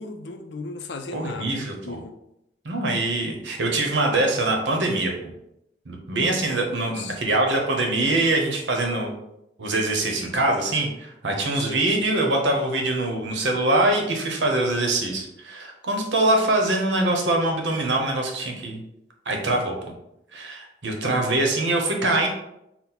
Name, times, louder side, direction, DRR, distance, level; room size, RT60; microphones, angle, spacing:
voice 1, 0.0-2.1 6.6-7.2 11.5-11.9, left 3 dB, 75° left, 6 dB, 0.5 m, -36 dB
voice 2, 1.1-2.0 2.6-5.3 5.9-9.1 9.6-18.8 19.3-19.7 20.3-22.3, right 2 dB, 85° right, 1 dB, 0.8 m, -23 dB
4.3 x 2.1 x 3.9 m, 0.84 s
head